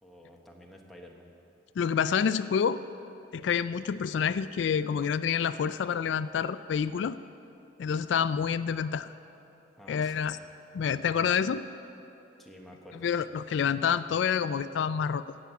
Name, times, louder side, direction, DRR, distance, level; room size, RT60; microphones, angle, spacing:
voice 1, 0.0-1.3 9.8-10.3 12.4-13.1, equal, ahead, 0 dB, 1.1 m, -50 dB
voice 2, 1.8-2.8 3.3-7.2 7.8-9.1 9.9-10.4 10.7-11.6 13.0-15.2, left 7 dB, 70° left, 14 dB, 0.3 m, -28 dB
17.0 x 6.0 x 8.1 m, 2.9 s
head